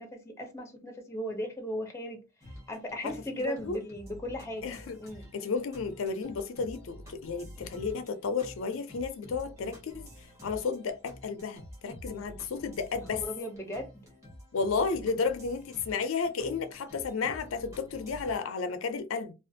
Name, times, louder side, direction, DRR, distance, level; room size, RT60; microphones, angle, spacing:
voice 1, 0.0-2.2 2.7-5.3 13.1-13.9, left 1 dB, 15° left, 0.5 m, -37 dB
sound 1, 2.4-18.3, equal, 15° right, 1.0 m, -49 dB
voice 2, 3.0-3.8 4.6-5.0 5.3-10.1 10.4-13.2 14.5-19.3, left 5 dB, 75° left, 0.4 m, -32 dB
2.4 x 2.3 x 2.6 m
head